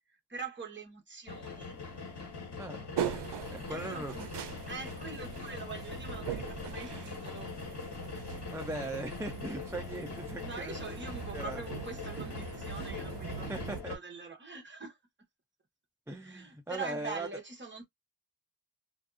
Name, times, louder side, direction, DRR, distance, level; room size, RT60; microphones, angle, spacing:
voice 1, 0.1-1.7 3.7-4.1 4.7-7.6 10.4-15.0 16.1-17.9, right 4 dB, 25° right, 0.9 m, -44 dB
sound 1, 1.3-14.0, left 3 dB, 75° left, 1.2 m, -42 dB
sound 2, 3.0-13.8, right 8 dB, 80° right, 0.6 m, -42 dB
voice 2, 3.5-4.3 8.5-10.8 11.3-11.6 13.5-13.9 16.1-17.3, right 2 dB, 5° right, 0.4 m, -39 dB
2.5 x 2.3 x 2.4 m
wide cardioid pair, 160°, 41 cm